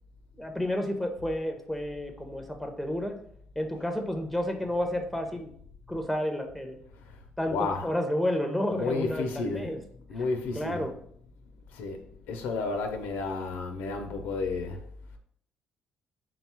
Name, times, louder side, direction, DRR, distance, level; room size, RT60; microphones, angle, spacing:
voice 1, 0.3-3.2 3.6-5.5 5.9-6.8 7.4-9.8 10.1-10.3 10.5-11.0, left 1 dB, ahead, 0.6 m, -31 dB
voice 2, 7.5-7.9 8.7-9.7 10.1-10.8 11.7-14.8, left 4 dB, 90° left, 0.5 m, -32 dB
3.8 x 2.3 x 4.3 m
cardioid pair, 95°, 3 cm